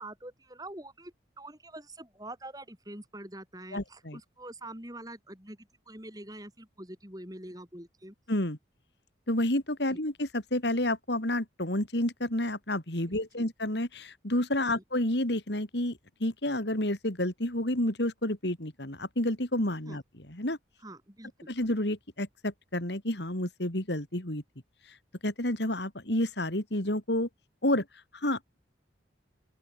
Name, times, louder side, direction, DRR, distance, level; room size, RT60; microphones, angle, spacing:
voice 1, 0.0-8.2 9.9-10.0 13.1-13.5 14.7-14.8 19.9-20.0 20.8-21.5, right 1 dB, 20° right, 7.0 m, -45 dB
voice 2, 3.7-4.2 8.3-8.6 9.3-20.0 20.3-20.6 21.5-24.4 25.2-27.3 27.6-27.9 28.1-28.6, left 1 dB, 65° left, 3.9 m, -30 dB
open air
head